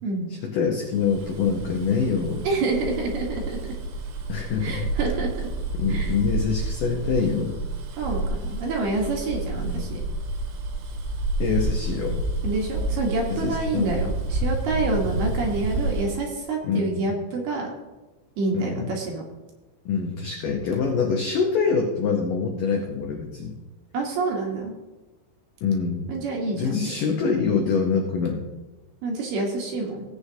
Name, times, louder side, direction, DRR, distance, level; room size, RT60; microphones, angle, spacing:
voice 1, 0.4-2.4 4.3-4.8 5.8-7.5 9.6-10.0 11.4-12.2 13.3-14.0 16.6-17.1 18.5-18.9 19.8-23.5 25.6-26.1 26.5-28.4, left 5 dB, 90° left, 0 dB, 1.8 m, -25 dB
Bus, 0.9-16.1, right 2 dB, 85° right, 3.7 m, -29 dB
voice 2, 2.4-3.6 4.6-5.5 5.9-6.1 8.0-10.0 12.4-17.7 18.4-19.2 23.9-24.7 26.1-26.9 29.0-30.0, right 3 dB, 65° right, -1 dB, 3.1 m, -27 dB
17.0 x 8.1 x 2.8 m, 1.1 s
omnidirectional pair, 5.5 m